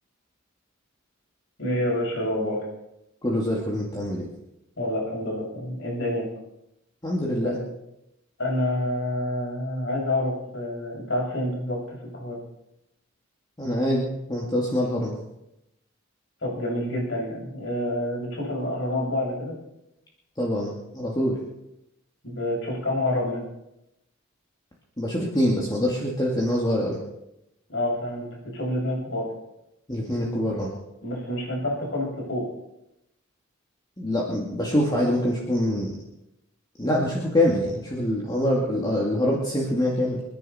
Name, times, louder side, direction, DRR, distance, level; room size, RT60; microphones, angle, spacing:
voice 1, 1.6-2.6 4.8-6.3 7.4-7.6 8.4-12.4 16.4-19.5 22.2-23.4 27.7-29.3 31.0-32.5, left 1 dB, 65° left, -3 dB, 7.8 m, -28 dB
voice 2, 3.2-4.3 7.0-7.6 13.6-15.1 20.4-21.4 25.0-27.0 29.9-30.7 34.0-35.9 36.8-40.2, left 1 dB, 20° left, -3 dB, 2.3 m, -25 dB
28.0 x 10.0 x 4.4 m, 0.87 s
head